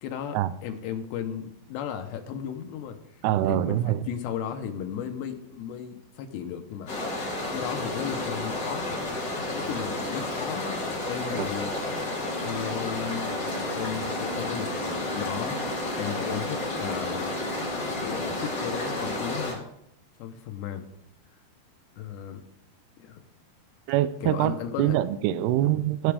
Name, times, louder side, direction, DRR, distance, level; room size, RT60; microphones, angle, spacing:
voice 1, 0.0-3.0 3.5-6.9 7.5-9.1 9.5-11.7 12.4-13.5 13.7-15.6 16.0-17.4 18.0-19.6 20.2-20.9 22.0-22.4 23.0-23.2 24.2-25.0 25.6-25.8, left 8 dB, 75° left, 6 dB, 3.1 m, -35 dB
voice 2, 3.2-4.0 11.4-11.5 23.9-26.1, right 13 dB, 85° right, 13 dB, 2.3 m, -24 dB
sound 1, 6.9-19.5, left 2 dB, 25° left, 3.4 m, -31 dB
sound 2, 12.2-19.1, right 3 dB, 70° right, 3.2 m, -41 dB
16.5 x 8.0 x 3.5 m, 0.76 s
omnidirectional pair, 5.2 m